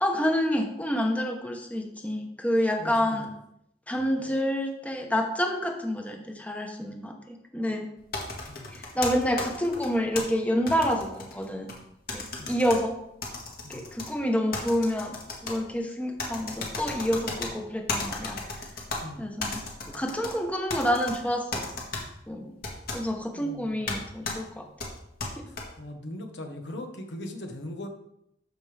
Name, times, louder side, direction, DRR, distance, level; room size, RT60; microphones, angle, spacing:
voice 1, 0.0-3.3 3.9-7.9 8.7-11.7 12.1-13.0 13.7-15.2 15.4-18.4 19.2-19.6 19.9-21.6 22.3-22.6 22.9-24.7 25.4-25.5, equal, 10° left, 3 dB, 0.9 m, -28 dB
voice 2, 2.7-3.2 8.5-8.7 12.4-12.6 13.6-13.9 19.0-19.3 23.2-24.1 25.5-27.9, left 1 dB, 80° left, 4 dB, 1.2 m, -40 dB
sound 1, 8.1-10.2 10.7-11.8 12.1-12.8 13.2-14.1 14.5-15.6 16.2-17.5 17.9-19.0 19.4-20.3 20.7-21.2 21.5-22.0 22.6-23.0 23.9-24.0 24.2-24.4 24.8-25.6, left 3 dB, 55° left, 1.8 m, -34 dB
13.0 x 5.2 x 3.4 m, 0.79 s
head